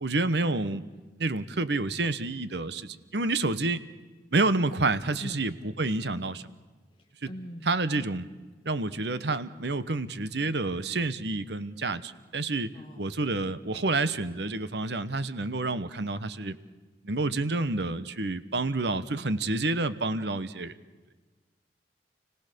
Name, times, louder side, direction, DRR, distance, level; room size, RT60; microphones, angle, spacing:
voice 1, 0.0-0.8 1.2-3.8 4.3-6.4 7.2-7.3 7.7-8.3 8.6-16.6 17.0-20.7, right 2 dB, 65° right, 14 dB, 1.1 m, -29 dB
voice 2, 7.0-7.7 12.7-13.1, equal, 30° left, 0 dB, 1.7 m, -42 dB
30.0 x 18.0 x 6.8 m, 1.3 s
head